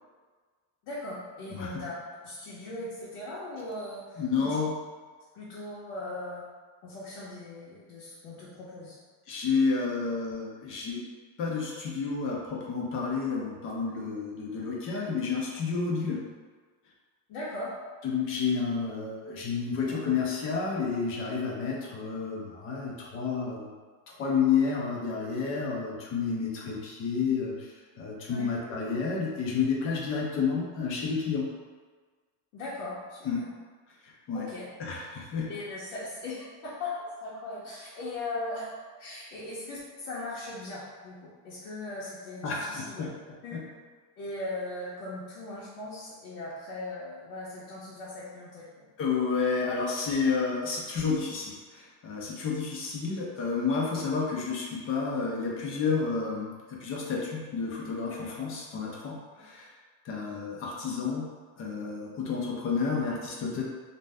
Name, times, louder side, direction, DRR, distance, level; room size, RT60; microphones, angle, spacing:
voice 1, 0.8-1.9 2.2-4.6 5.3-6.4 6.8-9.0 17.3-17.7 19.8-19.9 28.3-28.5 32.5-33.5 34.3-34.7 35.3-38.7 39.0-43.0 43.4-43.5 44.2-48.7, left 2 dB, 80° left, -9 dB, 1.0 m, -39 dB
voice 2, 4.2-4.7 9.3-11.0 11.4-16.2 18.0-23.7 24.2-27.7 28.0-31.4 33.2-33.4 34.0-34.5 34.8-35.5 42.4-43.1 43.5-43.6 49.0-59.7 60.0-61.3 61.6-63.6, left 5 dB, 30° left, -3 dB, 0.4 m, -30 dB
2.6 x 2.1 x 3.3 m, 1.5 s
cardioid pair, 160°, 45 cm